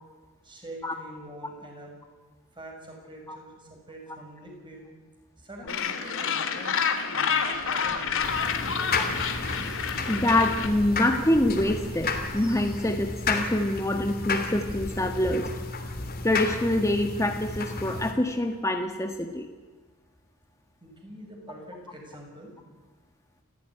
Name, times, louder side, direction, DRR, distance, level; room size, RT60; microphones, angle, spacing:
voice 1, 0.4-2.0 2.5-4.8 5.4-6.8 7.1-9.1 20.8-22.5, right 1 dB, 20° right, 1 dB, 6.7 m, -45 dB
Gull seagull, 5.7-10.7, left 6 dB, 60° left, 2.5 m, -28 dB
sound 1, 7.3-12.9, equal, 5° right, 3.6 m, -43 dB
sound 2, 8.2-18.1, left 4 dB, 45° left, 3.2 m, -32 dB
voice 2, 10.1-15.5 16.2-19.5, left 1 dB, 15° left, 4 dB, 1.5 m, -25 dB
30.0 x 15.0 x 9.9 m, 1.3 s
head